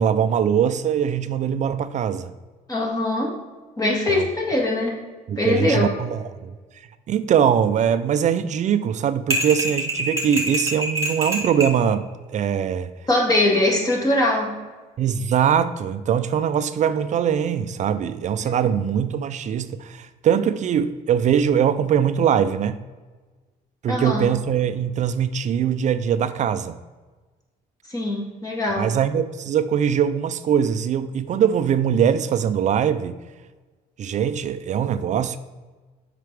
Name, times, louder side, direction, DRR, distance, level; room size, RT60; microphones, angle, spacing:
voice 1, 0.0-2.3 4.1-4.3 5.3-6.5 7.1-12.9 15.0-22.8 23.8-26.8 28.8-33.2 34.0-35.4, right 8 dB, 45° right, 0.4 m, -22 dB
voice 2, 2.7-3.3 3.8-5.0 5.4-5.8 13.1-14.6 18.4-18.6 23.9-24.3 27.9-29.0, left 1 dB, 20° left, 2.1 m, -22 dB
sound 1, 9.3-11.8, right 1 dB, 15° right, 2.1 m, -25 dB
7.5 x 5.8 x 3.4 m
cardioid pair, 110°, 17 cm